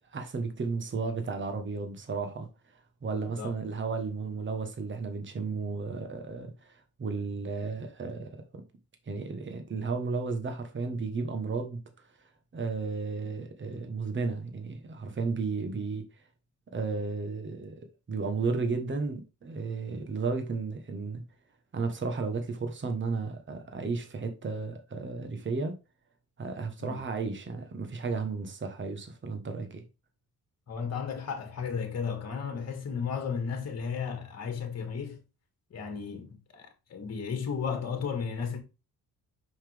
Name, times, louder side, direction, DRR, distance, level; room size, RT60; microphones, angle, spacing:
voice 1, 0.1-2.5 3.0-8.6 9.1-11.8 12.5-16.0 16.7-17.7 18.1-21.2 21.7-25.8 26.4-29.8, right 4 dB, 30° right, 1.3 m, -33 dB
voice 2, 3.1-3.5 26.8-27.0 30.7-35.2 35.7-38.6, left 6 dB, 40° left, 1.9 m, -34 dB
5.7 x 5.5 x 3.5 m
cardioid pair, 105°, 38 cm